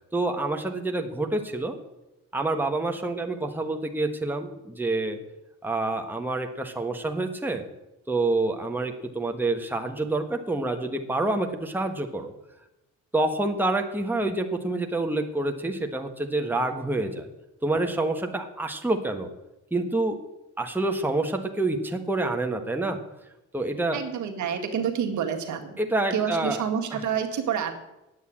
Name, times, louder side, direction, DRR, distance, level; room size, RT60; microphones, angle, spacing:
voice 1, 0.1-1.8 2.3-5.2 5.6-7.6 8.1-12.3 13.1-17.3 17.6-19.3 19.7-20.2 20.6-23.0 23.5-24.0 25.8-26.6 26.9-27.0, right 2 dB, 5° right, 4 dB, 1.4 m, -27 dB
voice 2, 23.9-25.8 26.1-27.7, right 7 dB, 70° right, 4 dB, 1.8 m, -28 dB
9.5 x 8.0 x 8.8 m, 0.94 s
cardioid pair, 90°, 30 cm